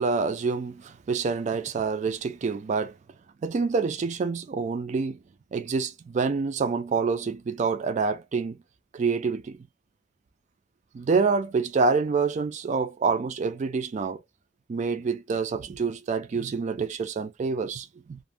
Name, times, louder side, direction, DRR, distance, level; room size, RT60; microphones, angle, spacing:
voice 1, 0.0-2.9 3.4-5.2 5.5-8.6 8.9-9.6 10.9-14.2 14.7-18.2, right 4 dB, 40° right, 0.3 m, -27 dB
2.5 x 2.1 x 3.3 m
head